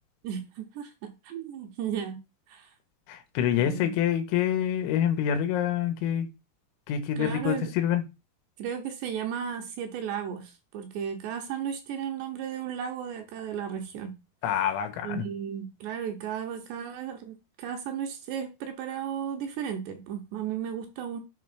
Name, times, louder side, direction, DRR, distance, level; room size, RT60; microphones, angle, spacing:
voice 1, 0.2-2.2 2.5-2.7 3.6-3.9 7.2-7.7 8.6-14.1 15.0-21.2, right 8 dB, 70° right, 3.0 m, -34 dB
voice 2, 3.1-6.3 6.9-8.0 14.4-15.2, left 9 dB, 90° left, 3.4 m, -26 dB
7.5 x 3.2 x 6.0 m
omnidirectional pair, 5.4 m